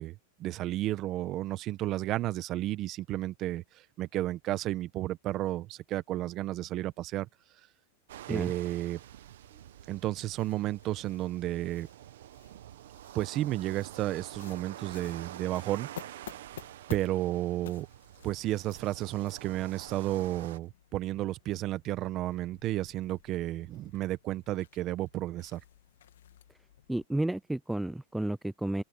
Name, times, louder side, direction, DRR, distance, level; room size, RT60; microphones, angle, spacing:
voice 1, 0.0-7.3 8.3-9.0 9.9-11.9 13.1-16.2 16.9-17.9 18.2-25.6, right 15 dB, 40° right, 1.2 m, -32 dB
sound 1, 8.1-20.6, right 13 dB, 75° right, 1.1 m, -48 dB
sound 2, 9.4-27.1, left 11 dB, 85° left, 1.8 m, -54 dB
voice 2, 26.9-28.8, right 1 dB, 5° right, 0.4 m, -32 dB
open air
hypercardioid pair, 130°, 0 cm